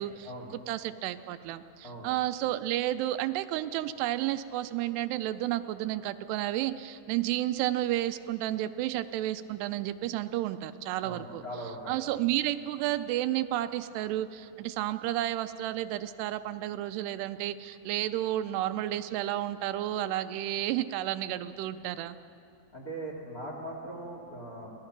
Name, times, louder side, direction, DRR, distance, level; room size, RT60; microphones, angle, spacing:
voice 1, 0.0-0.3 0.7-11.4 11.9-22.2, right 14 dB, 85° right, 11 dB, 2.6 m, -31 dB
voice 2, 11.0-12.1 22.7-24.7, right 1 dB, 30° left, -1 dB, 1.9 m, -40 dB
24.5 x 17.5 x 6.0 m, 2.7 s
omnidirectional pair, 4.8 m